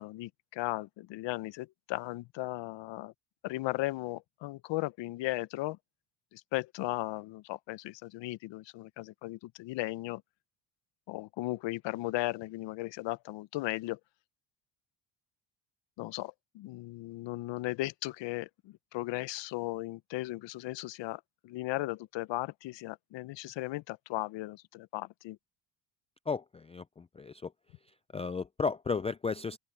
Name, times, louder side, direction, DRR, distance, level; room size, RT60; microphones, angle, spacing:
voice 1, 0.0-3.1 3.4-5.8 6.3-10.2 11.1-14.0 16.0-25.4, left 18 dB, 70° left, 0.7 m, -36 dB
voice 2, 26.3-27.5 28.1-29.6, left 5 dB, 15° left, 0.3 m, -34 dB
open air
cardioid pair, 115°, 45 cm